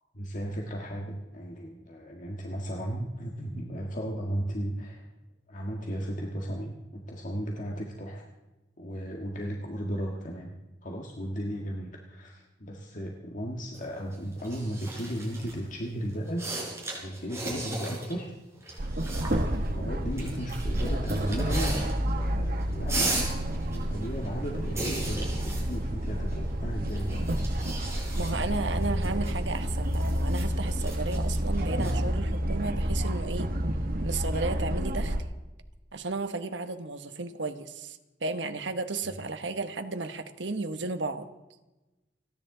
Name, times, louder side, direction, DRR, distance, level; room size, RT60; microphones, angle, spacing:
voice 1, 0.1-5.1 5.5-8.2 8.8-10.5 10.8-16.5 16.9-18.3 19.3-27.2 39.0-39.2, equal, 45° left, 0 dB, 1.7 m, -35 dB
sound 1, 13.7-15.6 16.1-18.2 18.4-19.5 20.2-22.2 22.5-26.5 26.8-31.9, right 2 dB, 15° right, 5.3 m, -37 dB
sound 2, 18.8-35.2, equal, 55° right, 1.2 m, -29 dB
voice 2, 28.2-33.5 34.0-35.2 35.9-41.3, right 3 dB, 75° right, 8 dB, 1.1 m, -34 dB
29.5 x 10.5 x 3.9 m, 1.1 s
head